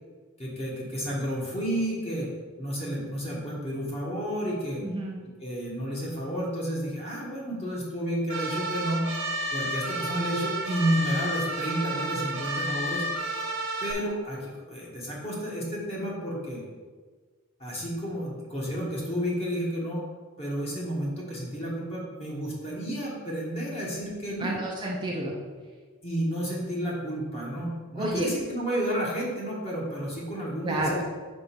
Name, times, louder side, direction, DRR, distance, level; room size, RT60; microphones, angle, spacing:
voice 1, 0.4-2.3 2.6-4.8 5.4-9.1 9.5-13.0 13.8-16.6 17.6-20.0 20.4-24.5 26.0-31.1, equal, 30° left, -4 dB, 1.7 m, -31 dB
voice 2, 4.8-5.2 24.4-25.4 28.0-28.3 30.6-31.0, right 1 dB, 20° right, -2 dB, 0.7 m, -30 dB
sound 1, 8.3-13.9, right 1 dB, 60° right, 1.0 m, -31 dB
5.2 x 4.4 x 6.1 m, 1.5 s
head